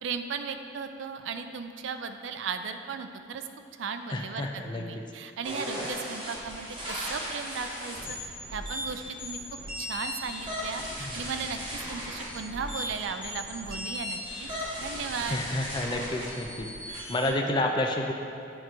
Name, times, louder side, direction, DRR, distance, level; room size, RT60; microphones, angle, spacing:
voice 1, 0.0-3.4 3.8-8.2 8.5-9.4 9.8-11.6 11.9-14.5 14.8-15.4, right 5 dB, 70° right, 8 dB, 0.4 m, -36 dB
voice 2, 4.1-4.8 11.0-11.1 15.3-18.1, left 1 dB, 25° left, 2 dB, 0.3 m, -30 dB
sound 1, 5.4-17.3, equal, 25° right, 1.4 m, -37 dB
8.8 x 3.0 x 4.6 m, 2.5 s
head